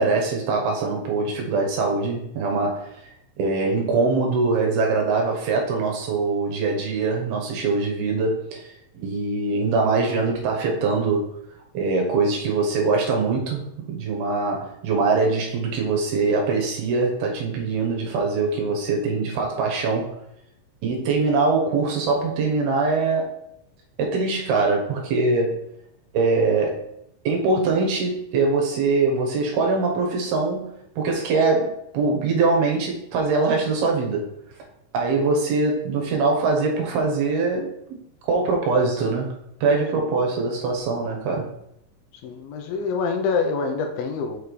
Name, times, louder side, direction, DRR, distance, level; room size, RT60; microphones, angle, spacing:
voice 1, 0.0-2.9 3.4-8.7 8.9-11.3 11.7-20.2 20.8-23.4 24.0-25.6 26.1-26.8 27.2-34.3 34.9-39.3 39.6-41.5, right 3 dB, 75° right, 0 dB, 3.0 m, -23 dB
voice 2, 42.2-44.4, left 4 dB, 80° left, 4 dB, 2.4 m, -26 dB
6.6 x 5.8 x 3.3 m, 0.77 s
omnidirectional pair, 4.5 m